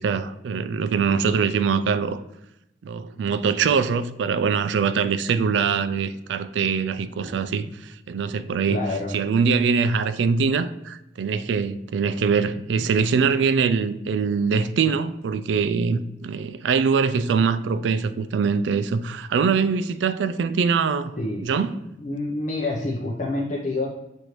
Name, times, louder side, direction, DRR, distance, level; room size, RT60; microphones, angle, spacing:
voice 1, 0.0-2.2 2.8-8.8 9.1-21.1 21.4-21.8, right 5 dB, 85° right, 0.3 m, -23 dB
voice 2, 8.7-9.1 21.2-21.4 22.0-23.9, left 2 dB, 40° left, 0.5 m, -27 dB
6.5 x 2.6 x 2.9 m
head